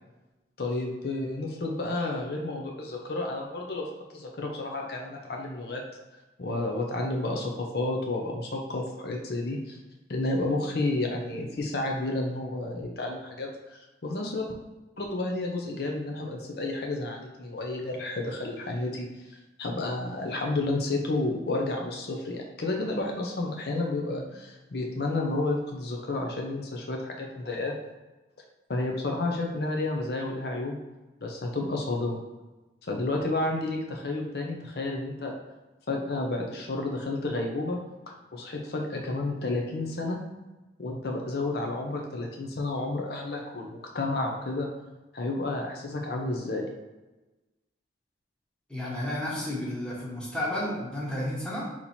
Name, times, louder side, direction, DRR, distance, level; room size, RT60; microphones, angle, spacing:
voice 1, 0.6-5.8 6.4-9.8 10.1-14.5 15.0-19.3 19.6-27.8 28.7-30.8 31.2-32.2 32.9-35.4 35.9-37.8 38.3-40.2 40.8-44.7 45.1-46.7, left 2 dB, 60° left, 1 dB, 0.6 m, -31 dB
voice 2, 48.7-51.7, left 1 dB, 5° left, -6 dB, 1.1 m, -32 dB
4.1 x 2.9 x 4.2 m, 1.1 s
head